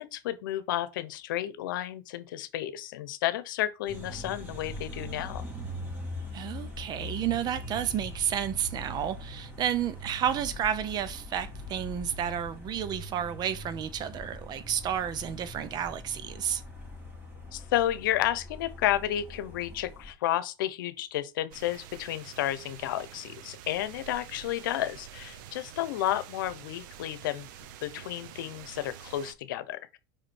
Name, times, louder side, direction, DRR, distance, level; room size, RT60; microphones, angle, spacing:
voice 1, 0.0-5.4 17.5-27.5 27.8-30.0, left 13 dB, 85° left, 0.9 m, -31 dB
sound 1, 3.9-20.1, left 1 dB, 20° right, 3.5 m, -42 dB
voice 2, 6.3-16.6, right 9 dB, 40° right, 0.8 m, -31 dB
sound 2, 21.5-29.3, right 10 dB, 75° right, 0.8 m, -47 dB
5.1 x 5.1 x 4.3 m
supercardioid pair, 115°, 11 cm